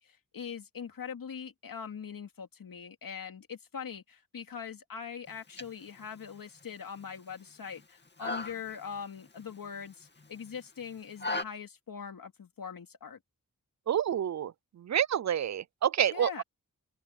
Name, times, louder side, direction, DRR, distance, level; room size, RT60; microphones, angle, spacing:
voice 1, 0.0-13.2 16.1-16.4, left 7 dB, 80° left, 2.6 m, -42 dB
sound 1, 5.3-11.4, left 2 dB, 30° left, 2.5 m, -41 dB
voice 2, 13.9-14.5 14.8-16.4, right 9 dB, 55° right, 0.4 m, -28 dB
open air
wide cardioid pair, 80°, 34 cm